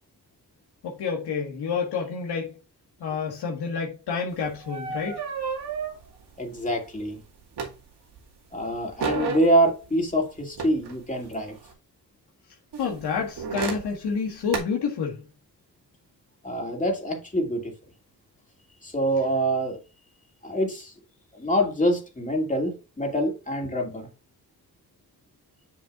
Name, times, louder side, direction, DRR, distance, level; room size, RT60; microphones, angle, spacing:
voice 1, 0.8-2.5 3.0-5.2 12.8-15.2, left 5 dB, 80° left, 1.7 m, -29 dB
sound 1, 4.3-8.2 8.5-11.7 12.7-14.6, right 5 dB, 80° right, 2.2 m, -33 dB
voice 2, 6.4-7.2 8.5-11.5 16.4-17.7 18.8-19.8 20.4-20.9 21.3-24.1, equal, 20° left, 2.6 m, -25 dB
6.9 x 6.8 x 2.5 m
cardioid pair, 100°, 39 cm